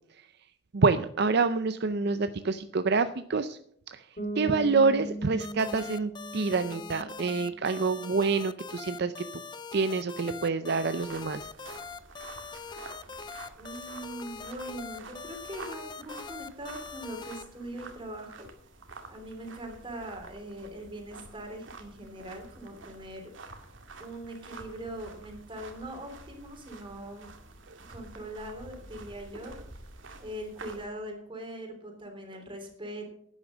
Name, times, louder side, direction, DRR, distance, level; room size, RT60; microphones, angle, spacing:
voice 1, 0.7-3.6 3.9-9.3 9.7-11.5 27.7-27.8, right 4 dB, 60° right, 11 dB, 0.6 m, -27 dB
Bass guitar, 4.2-7.9, right 1 dB, 40° left, 3.1 m, -39 dB
sound 1, 5.4-17.4, left 5 dB, 25° left, 0.6 m, -42 dB
sound 2, 11.0-30.9, right 3 dB, 85° right, 2.1 m, -49 dB
voice 2, 13.6-18.5 19.1-23.6 24.0-27.3 27.9-29.5 30.2-33.1, right 1 dB, 25° right, 4 dB, 3.3 m, -41 dB
11.5 x 9.7 x 6.2 m, 0.67 s
head